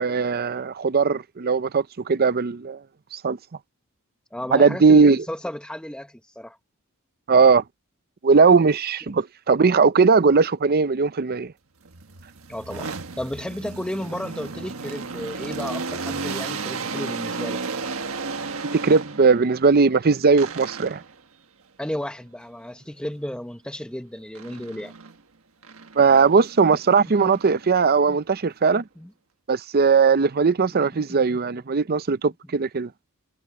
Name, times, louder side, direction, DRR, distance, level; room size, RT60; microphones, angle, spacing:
voice 1, 0.0-2.8 3.1-3.4 4.5-5.2 7.3-7.6 8.2-11.5 18.7-21.0 26.0-28.8 29.5-32.9, right 5 dB, 45° right, 0.6 m, -19 dB
voice 2, 4.3-6.6 12.5-12.9 13.2-17.8 21.8-24.9 27.0-27.4 28.1-28.2 29.0-29.1 30.7-31.4, left 1 dB, 5° left, 0.9 m, -33 dB
sound 1, 11.8-19.5 20.4-21.2 24.3-25.2 25.6-28.0, right 4 dB, 75° right, 1.5 m, -34 dB
head